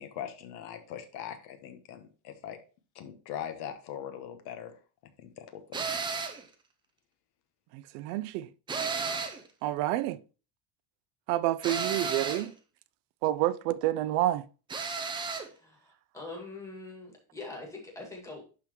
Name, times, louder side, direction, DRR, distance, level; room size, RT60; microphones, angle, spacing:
voice 1, 0.0-2.6 2.9-4.8 5.2-6.0, left 9 dB, 60° left, 1.1 m, -41 dB
sound 1, 5.7-6.4 8.7-9.5 11.6-12.5 14.7-15.5, right 5 dB, 10° right, 0.4 m, -33 dB
voice 2, 7.7-8.5 9.6-10.2 11.3-12.5 13.2-14.4, right 14 dB, 90° right, 0.6 m, -28 dB
voice 3, 16.1-18.5, left 3 dB, 5° left, 2.0 m, -43 dB
11.5 x 3.8 x 3.0 m
cardioid pair, 165°, 45 cm